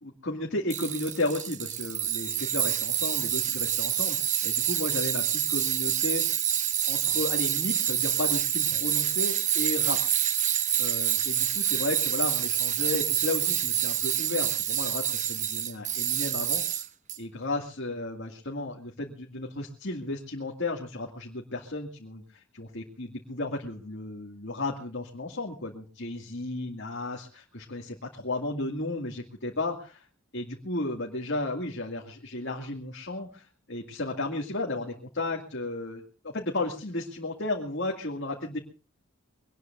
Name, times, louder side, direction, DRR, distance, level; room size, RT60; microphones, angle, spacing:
voice 1, 0.0-6.4 6.9-10.1 10.8-16.8 17.2-30.1 30.3-38.6, left 2 dB, 60° left, 0 dB, 2.2 m, -34 dB
Tools, 0.7-17.2, right 10 dB, 35° right, 1.0 m, -27 dB
23.5 x 19.0 x 2.6 m, 0.35 s
head